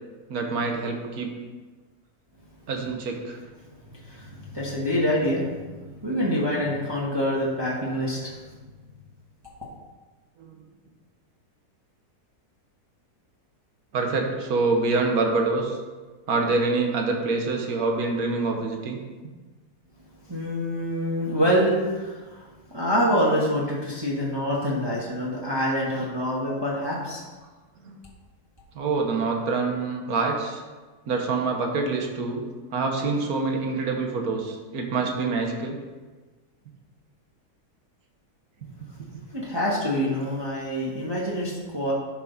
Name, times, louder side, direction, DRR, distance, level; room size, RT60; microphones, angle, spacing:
voice 1, 0.3-1.3 2.7-3.4 10.4-10.6 13.9-15.8 16.3-19.0 27.8-28.0 28.7-30.6 31.1-32.4 32.7-35.8, right 3 dB, 70° right, 3 dB, 1.7 m, -26 dB
voice 2, 3.9-5.6 6.0-8.4 20.3-27.2 39.3-41.9, equal, 15° right, -5 dB, 1.4 m, -26 dB
11.0 x 5.9 x 4.1 m, 1.3 s
omnidirectional pair, 1.7 m